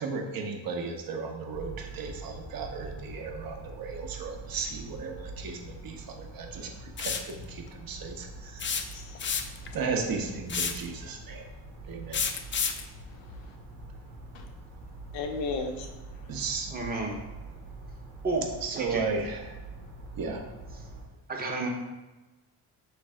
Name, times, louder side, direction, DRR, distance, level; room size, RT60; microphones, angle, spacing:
voice 1, 0.0-9.0 9.7-11.4 11.8-12.3 16.3-16.7 18.6-19.6 20.2-20.4, right 4 dB, 50° right, 2 dB, 0.8 m, -35 dB
sound 1, 1.5-21.1, right 2 dB, 90° right, 1.1 m, -44 dB
sound 2, 7.0-7.3 8.6-9.7 10.5-10.9 12.1-12.8, left 6 dB, 30° left, 0.3 m, -29 dB
voice 2, 8.9-9.8 13.1-13.6 14.3-14.5 15.1-16.4, left 4 dB, 85° left, 3 dB, 0.8 m, -37 dB
voice 3, 16.7-17.2 18.2-18.4 18.7-19.1 21.3-21.7, right 3 dB, 20° right, -1 dB, 0.9 m, -31 dB
3.3 x 3.2 x 4.7 m, 1.1 s
cardioid pair, 85°, 44 cm